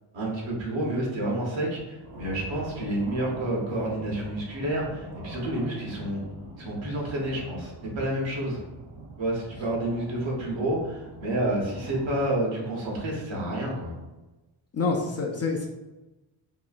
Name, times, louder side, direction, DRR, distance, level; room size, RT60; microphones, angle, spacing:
voice 1, 0.1-6.2 6.6-8.6 9.2-13.9, right 1 dB, 65° right, -2 dB, 1.0 m, -29 dB
sound 1, 2.0-12.3, right 1 dB, 85° right, 0.9 m, -44 dB
voice 2, 14.7-15.7, left 4 dB, 35° left, 0 dB, 0.4 m, -27 dB
3.0 x 2.1 x 2.4 m, 1.1 s
cardioid pair, 55°, 49 cm